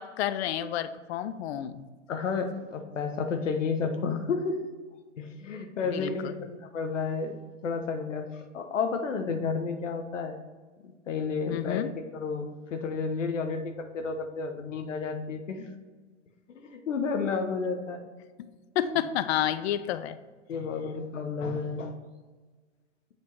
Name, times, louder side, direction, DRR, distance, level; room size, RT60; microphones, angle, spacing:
voice 1, 0.0-1.9 5.9-6.4 11.5-11.9 18.4-20.2, left 11 dB, 60° left, 12 dB, 0.5 m, -30 dB
voice 2, 2.1-4.6 5.2-10.4 10.8-11.8 12.1-15.7 16.5-18.1 20.5-22.0, left 5 dB, 80° left, 6 dB, 1.1 m, -31 dB
7.7 x 3.6 x 4.5 m, 1.4 s
hypercardioid pair, 115°, 37 cm